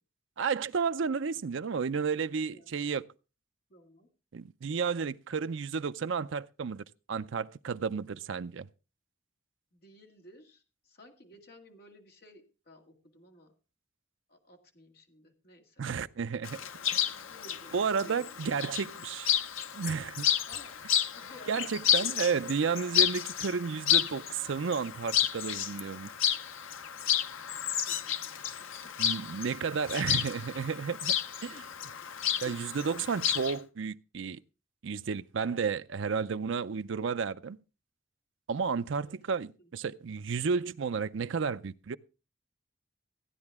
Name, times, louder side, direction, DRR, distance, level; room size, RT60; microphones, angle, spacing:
voice 1, 0.4-3.1 4.3-8.7 15.8-16.6 16.9-17.0 17.7-19.3 19.7-20.3 21.5-26.1 29.0-31.2 31.4-31.6 32.4-34.4 34.8-37.6 38.5-42.0, right 5 dB, 65° right, 0.5 m, -32 dB
voice 2, 3.7-4.1 5.6-5.7 9.7-13.5 14.3-15.8 17.1-17.8 18.0-18.4 20.5-20.9 21.1-21.7 22.0-22.1 23.7-24.1 27.5-28.0 28.2-28.9 31.5-31.7 32.1-32.5 35.5-35.8 39.0-39.2 39.6-39.7, left 1 dB, 50° left, 2.1 m, -55 dB
Chirp tweet, 16.4-33.5, left 10 dB, 75° left, 0.7 m, -31 dB
15.0 x 9.7 x 3.6 m
head